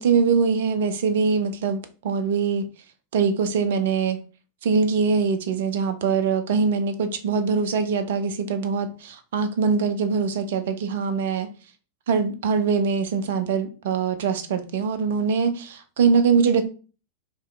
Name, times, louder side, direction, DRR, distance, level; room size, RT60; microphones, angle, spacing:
voice 1, 0.0-2.7 3.1-4.2 4.6-11.5 12.1-16.6, right 5 dB, 55° right, 0.4 m, -23 dB
2.6 x 2.4 x 3.2 m
figure-of-eight pair, 90°, 0 cm